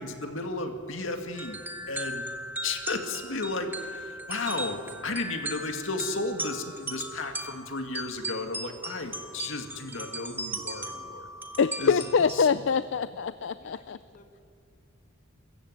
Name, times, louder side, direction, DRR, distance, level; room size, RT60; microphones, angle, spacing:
voice 1, 0.0-1.6 1.9-2.3 2.6-11.3 11.8-12.0 12.3-12.6, left 3 dB, 85° left, 5 dB, 2.1 m, -34 dB
sound 1, 1.3-12.4, right 1 dB, 10° right, 1.3 m, -38 dB
voice 2, 11.6-14.0, left 6 dB, 65° left, 14 dB, 0.4 m, -25 dB
voice 3, 13.4-14.4, left 2 dB, 40° left, 5 dB, 1.7 m, -56 dB
24.0 x 14.5 x 8.0 m, 2.5 s
head